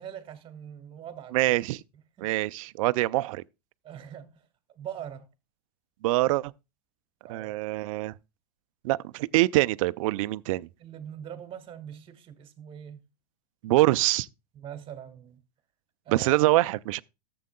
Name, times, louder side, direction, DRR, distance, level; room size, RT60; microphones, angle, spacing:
voice 1, 0.0-1.6 2.2-2.3 3.8-4.4 4.8-5.3 7.2-7.6 10.8-13.0 14.5-15.4 16.0-16.5, right 9 dB, 25° right, 1.6 m, -42 dB
voice 2, 1.3-1.8 2.2-3.4 6.0-6.5 7.3-8.1 8.8-10.7 13.6-14.3 16.1-17.0, right 18 dB, 60° right, 0.4 m, -24 dB
14.5 x 7.7 x 2.2 m
hypercardioid pair, 110°, 20 cm